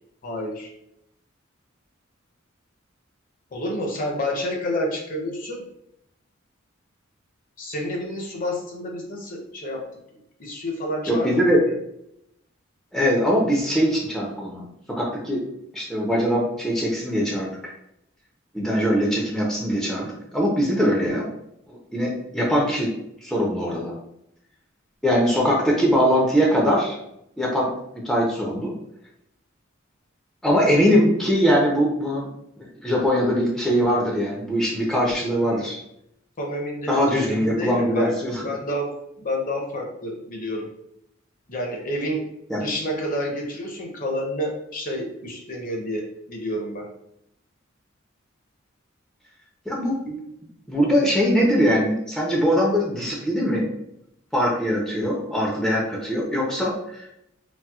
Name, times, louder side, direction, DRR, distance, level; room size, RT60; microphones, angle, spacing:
voice 1, 0.2-0.7 3.5-5.7 7.6-9.8 10.4-11.7 35.4-35.7 36.4-38.9 39.2-40.7 41.5-42.2 42.5-46.9, equal, 45° left, 1 dB, 0.6 m, -29 dB
voice 2, 11.1-11.6 12.9-15.4 15.7-17.7 18.5-21.3 21.7-22.9 23.2-23.9 25.0-27.0 27.4-27.7 28.0-28.7 30.4-32.3 32.8-35.8 36.9-38.5 42.5-42.6 49.7-50.2 50.7-53.7 54.3-57.1, equal, ahead, -3 dB, 0.5 m, -22 dB
4.1 x 2.1 x 2.3 m, 0.78 s
head